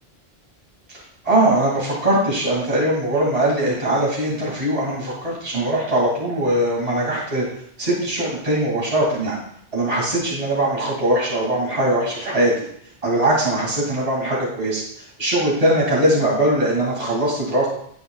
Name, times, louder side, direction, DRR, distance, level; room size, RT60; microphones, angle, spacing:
voice 1, 0.9-7.4 7.8-9.4 9.7-12.5 13.0-14.8 15.2-17.7, right 1 dB, 35° right, -5 dB, 2.6 m, -21 dB
18.5 x 6.4 x 2.4 m, 0.67 s
omnidirectional pair, 1.1 m